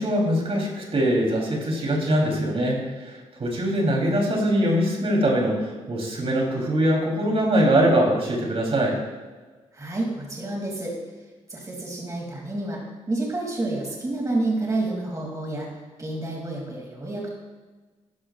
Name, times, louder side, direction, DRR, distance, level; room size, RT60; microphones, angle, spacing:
voice 1, 0.0-9.0, right 1 dB, 50° right, -1 dB, 3.4 m, -22 dB
voice 2, 9.7-10.9 11.5-12.8 13.1-15.7 16.0-17.3, right 2 dB, 25° right, -2 dB, 2.8 m, -29 dB
12.0 x 12.0 x 2.5 m, 1.3 s
cardioid pair, 60°, 12 cm